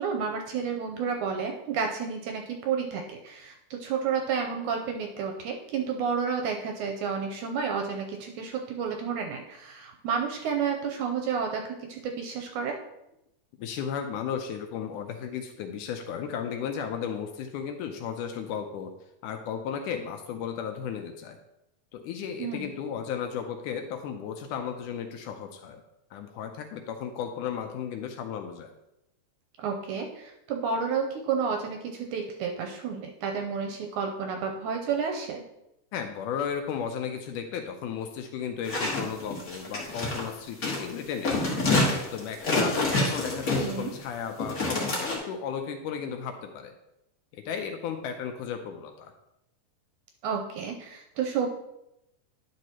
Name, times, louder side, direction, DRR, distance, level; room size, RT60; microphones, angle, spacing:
voice 1, 0.0-12.7 22.4-22.7 29.6-35.4 43.5-43.9 50.2-51.5, right 6 dB, 75° right, 3 dB, 1.9 m, -31 dB
voice 2, 13.6-18.9 19.2-21.4 21.9-25.8 26.1-28.7 35.9-41.5 42.1-46.7 47.5-49.1, left 7 dB, 80° left, 6 dB, 2.0 m, -34 dB
sound 1, 38.6-40.2 40.6-40.9 41.2-44.0 44.4-45.2, left 2 dB, 45° left, 1.1 m, -27 dB
10.5 x 6.2 x 2.9 m, 0.86 s
omnidirectional pair, 3.9 m